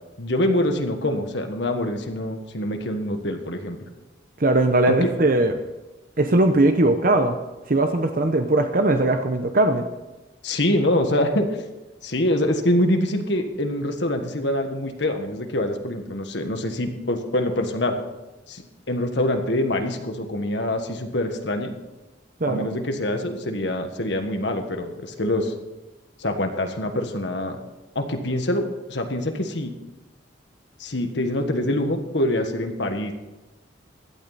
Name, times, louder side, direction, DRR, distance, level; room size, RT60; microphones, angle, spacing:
voice 1, 0.2-3.9 4.9-5.1 10.4-11.5 12.0-18.0 18.5-21.7 22.5-25.5 26.2-27.6 27.9-29.7 30.8-33.1, left 1 dB, 65° left, 5 dB, 1.6 m, -25 dB
voice 2, 4.4-5.5 6.2-7.4 7.7-9.8 22.4-22.7, right 2 dB, 45° right, 6 dB, 0.8 m, -19 dB
16.0 x 12.0 x 4.1 m, 1.1 s
head